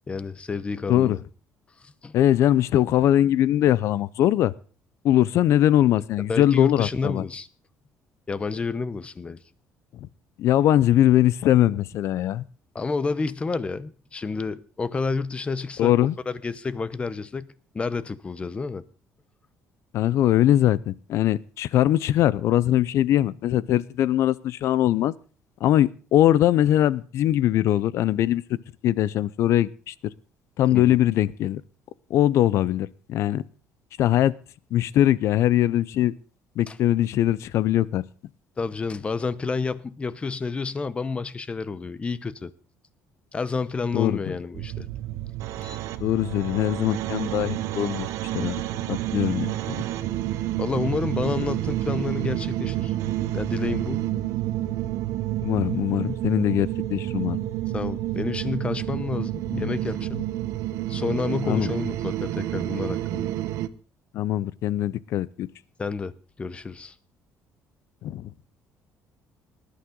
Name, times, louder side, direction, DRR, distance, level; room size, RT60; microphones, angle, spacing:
voice 1, 0.1-1.2 1.8-2.1 6.3-7.5 8.3-9.4 12.7-15.9 16.3-17.5 17.7-18.8 30.7-31.0 36.7-36.8 38.6-42.5 43.3-44.9 45.6-45.8 50.6-52.9 53.3-54.1 57.7-60.2 60.9-63.3 65.8-66.1 66.4-66.9, left 4 dB, 20° left, 0.8 m, -30 dB
voice 2, 2.1-4.5 5.0-7.2 10.4-12.4 15.8-16.1 19.9-25.1 25.6-28.4 28.8-29.9 30.6-31.6 32.1-33.4 34.0-34.3 34.7-36.1 36.6-38.0 43.9-44.3 46.0-48.1 48.3-48.6 48.9-49.8 55.4-57.4 59.5-59.7 61.5-61.7 64.1-65.5 68.0-68.3, left 12 dB, 65° left, 0.6 m, -21 dB
sound 1, 44.5-63.7, right 14 dB, 75° right, 0.8 m, -29 dB
19.5 x 11.5 x 3.9 m
cardioid pair, 130°, 5 cm